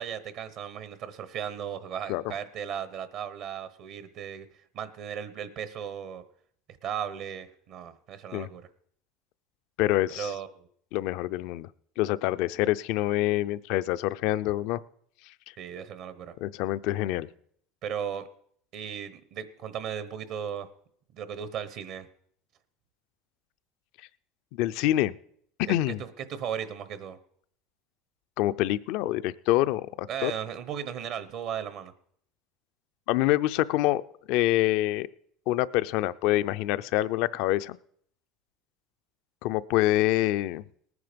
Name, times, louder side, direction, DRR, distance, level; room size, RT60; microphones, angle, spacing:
voice 1, 0.0-6.2 6.8-8.7 10.1-10.7 15.6-16.3 17.8-18.3 18.7-20.7 21.1-22.1 25.7-27.2 30.1-31.9, right 8 dB, 60° right, 14 dB, 1.0 m, -36 dB
voice 2, 9.8-10.3 10.9-11.7 12.0-14.8 16.4-17.3 24.5-25.1 25.7-26.0 28.4-30.3 33.1-34.0 34.3-35.1 35.5-37.8 39.4-40.6, left 15 dB, 65° left, 15 dB, 0.5 m, -26 dB
18.5 x 9.6 x 5.2 m, 0.64 s
supercardioid pair, 120°, 0 cm